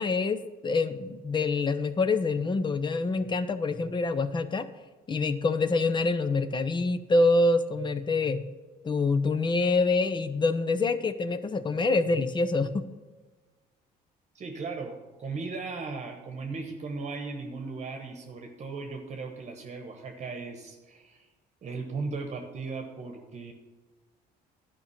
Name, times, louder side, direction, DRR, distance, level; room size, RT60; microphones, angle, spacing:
voice 1, 0.0-4.7 5.1-8.4 8.8-12.8, left 3 dB, 25° left, 12 dB, 0.7 m, -26 dB
voice 2, 14.3-21.3 21.6-23.5, right 4 dB, 40° right, 4 dB, 1.2 m, -37 dB
11.0 x 5.2 x 7.2 m, 1.3 s
cardioid pair, 110°, 17 cm